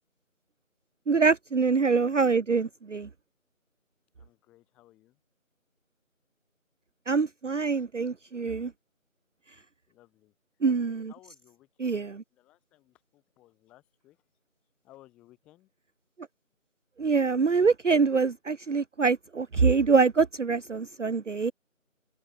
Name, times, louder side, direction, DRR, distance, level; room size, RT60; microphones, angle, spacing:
voice 1, 1.1-3.1 7.1-8.7 10.6-11.1 11.8-12.2 17.0-21.5, right 4 dB, 60° right, 0.5 m, -24 dB
voice 2, 4.2-5.2 9.5-10.3 11.1-14.2 14.8-15.7, left 16 dB, ahead, 7.4 m, -59 dB
open air
figure-of-eight pair, 170°, 41 cm